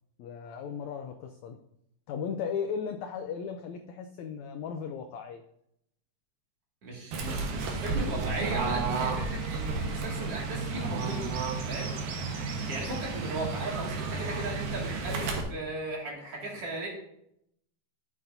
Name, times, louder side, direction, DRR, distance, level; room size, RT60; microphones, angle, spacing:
voice 1, 0.2-1.6 2.1-5.4, left 6 dB, 85° left, 6 dB, 1.6 m, -36 dB
voice 2, 6.8-11.3 11.7-11.9 12.7-16.9, right 2 dB, 45° right, -3 dB, 3.1 m, -37 dB
Fowl / Bird, 7.1-15.4, right 4 dB, 75° right, 2.9 m, -32 dB
11.5 x 8.7 x 2.7 m, 0.74 s
omnidirectional pair, 4.0 m